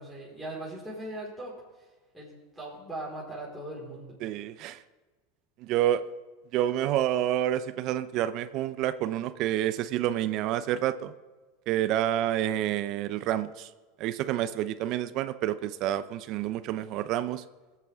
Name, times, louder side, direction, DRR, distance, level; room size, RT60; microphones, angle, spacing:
voice 1, 0.0-1.5 2.1-4.1, right 1 dB, ahead, -6 dB, 4.5 m, -39 dB
voice 2, 4.2-4.8 5.6-6.0 6.5-11.1 11.7-13.7 14.0-17.4, right 12 dB, 55° right, 14 dB, 0.6 m, -28 dB
21.5 x 8.3 x 3.6 m, 1.3 s
hypercardioid pair, 100°, 0 cm